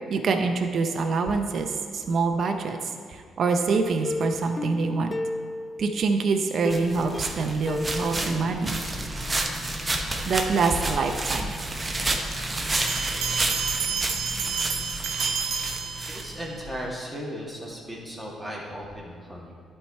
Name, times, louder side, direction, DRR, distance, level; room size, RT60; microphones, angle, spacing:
voice 1, 0.1-5.2 5.8-8.8 10.3-11.5, right 4 dB, 55° right, 5 dB, 0.7 m, -25 dB
Plucked string instrument, 4.0-6.0 6.7-9.4 9.8-9.9 10.2-10.3, left 2 dB, 20° left, 0.3 m, -34 dB
sound 1, 6.7-16.7, right 2 dB, 20° right, 0.9 m, -30 dB
sound 2, 12.7-16.5, right 6 dB, 85° right, 1.0 m, -30 dB
voice 2, 16.1-19.5, equal, 5° right, -4 dB, 2.0 m, -36 dB
11.5 x 4.5 x 4.3 m, 2.2 s
cardioid pair, 90°, 0 cm